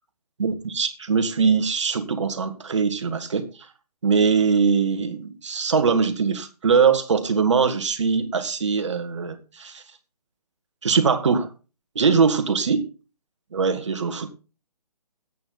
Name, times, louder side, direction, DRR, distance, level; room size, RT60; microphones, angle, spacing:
voice 1, 0.4-3.5 4.0-9.8 10.8-11.5 12.0-12.9 13.5-14.3, right 5 dB, 45° right, 2.0 m, -22 dB
13.5 x 9.0 x 4.0 m
figure-of-eight pair, 145°, 20 cm